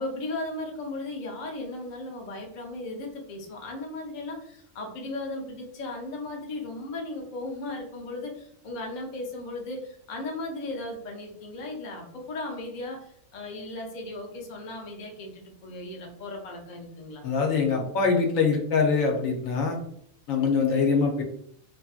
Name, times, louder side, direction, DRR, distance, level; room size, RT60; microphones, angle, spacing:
voice 1, 0.0-17.2, left 2 dB, 50° left, 0 dB, 0.6 m, -36 dB
voice 2, 17.2-19.8 20.3-21.2, left 5 dB, 80° left, 1 dB, 1.1 m, -23 dB
2.6 x 2.5 x 2.3 m, 0.66 s
omnidirectional pair, 1.4 m